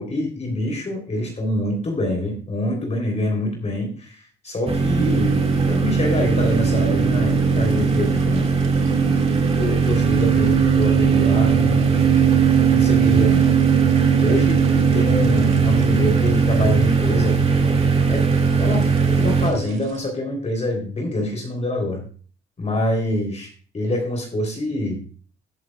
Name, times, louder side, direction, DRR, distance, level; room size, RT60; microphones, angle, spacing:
voice 1, 0.0-8.5 9.5-11.9 12.7-13.4 14.2-17.4 18.1-18.2 18.6-22.0 22.6-23.5 23.7-25.0, left 1 dB, 35° left, 2 dB, 3.5 m, -25 dB
sound 1, 4.7-19.5, right 4 dB, 30° right, 2.1 m, -19 dB
sound 2, 5.0-20.0, right 14 dB, 90° right, 1.9 m, -25 dB
18.0 x 7.8 x 2.4 m, 0.40 s
cardioid pair, 90°, 20 cm